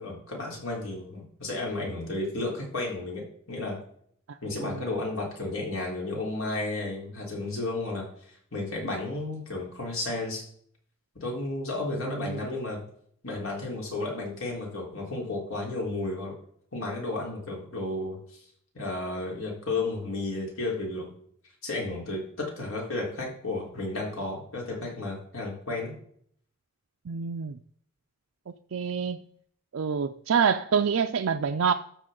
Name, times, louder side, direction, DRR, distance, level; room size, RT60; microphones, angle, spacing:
voice 1, 0.0-3.8 4.4-8.1 8.5-10.4 11.2-12.8 13.2-16.3 16.7-18.4 18.7-21.1 21.6-25.9, left 2 dB, 85° left, 3.9 m, -33 dB
voice 2, 11.9-12.4 27.1-27.6 28.5-29.2 29.7-31.7, right 6 dB, 85° right, 0.5 m, -27 dB
13.0 x 6.8 x 3.8 m
head